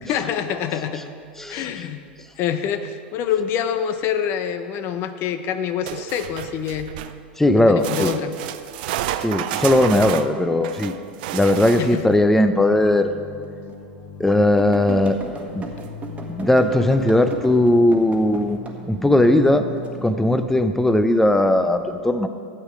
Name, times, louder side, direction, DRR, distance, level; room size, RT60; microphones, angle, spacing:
voice 1, 0.1-1.0 1.5-2.0 2.4-6.9 7.6-8.3 11.8-12.2, left 8 dB, 45° left, 10 dB, 0.7 m, -26 dB
voice 2, 1.4-1.7 3.3-3.4 7.4-8.1 9.2-11.0 11.3-13.2 14.2-15.2 15.5-15.7 16.3-18.6 18.9-19.7 20.0-22.3, left 1 dB, 5° left, 9 dB, 0.7 m, -18 dB
sound 1, 5.9-7.2 7.8-12.1 15.4-15.5 15.8-15.9 16.6-16.7, right 12 dB, 60° right, 0.5 m, -30 dB
sound 2, 11.8-20.9, left 2 dB, 65° left, 2.2 m, -39 dB
sound 3, 13.0-13.1 13.7-13.8 14.6-18.8 19.2-19.9 20.5-20.9, right 4 dB, 25° right, 1.5 m, -36 dB
12.5 x 8.2 x 4.9 m, 2.3 s
hypercardioid pair, 85°, 5 cm